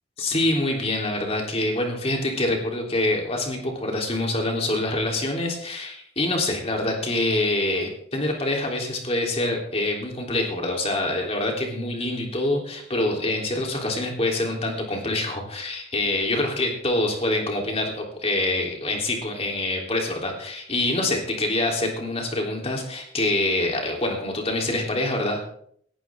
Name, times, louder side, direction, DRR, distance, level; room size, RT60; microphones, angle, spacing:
voice 1, 0.2-25.4, left 2 dB, 35° left, 1 dB, 3.5 m, -25 dB
18.0 x 14.0 x 3.7 m, 0.64 s
head